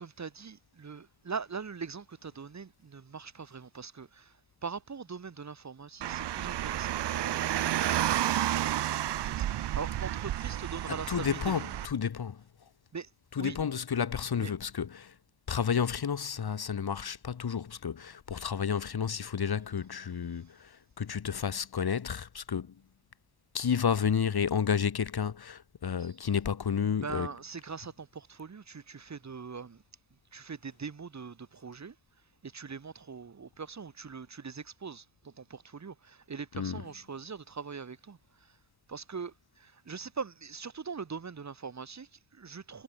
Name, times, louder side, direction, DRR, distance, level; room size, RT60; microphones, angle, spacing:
voice 1, 0.0-4.3 4.6-11.6 12.9-13.1 13.4-13.6 14.3-14.5 20.0-20.2 26.0-26.1 27.0-29.8 30.3-31.9 32.4-38.5 38.9-42.8, right 5 dB, 35° right, 2.8 m, -42 dB
Car, 6.0-11.9, right 12 dB, 60° right, 0.7 m, -31 dB
voice 2, 10.9-12.4 13.3-15.2 15.5-22.8 23.5-27.3 36.5-36.8, left 7 dB, 50° left, 5.5 m, -31 dB
wide cardioid pair, 145°, 48 cm